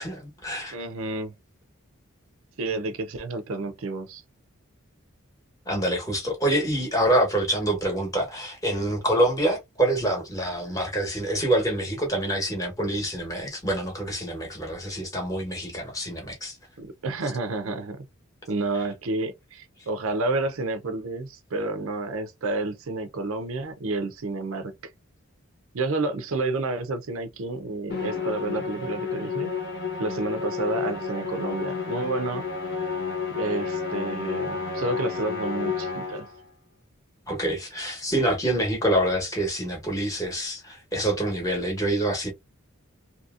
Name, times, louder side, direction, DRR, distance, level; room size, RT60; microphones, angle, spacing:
voice 1, 0.0-0.7 5.7-16.6 37.3-42.3, right 1 dB, 15° left, 1.0 m, -26 dB
voice 2, 0.7-1.3 2.6-4.2 16.8-18.1 18.5-24.7 25.7-29.5 30.0-32.5 33.3-36.3, right 2 dB, 70° right, 0.5 m, -30 dB
Musical instrument, 27.9-36.4, left 5 dB, 50° left, 0.9 m, -31 dB
2.8 x 2.7 x 2.4 m
head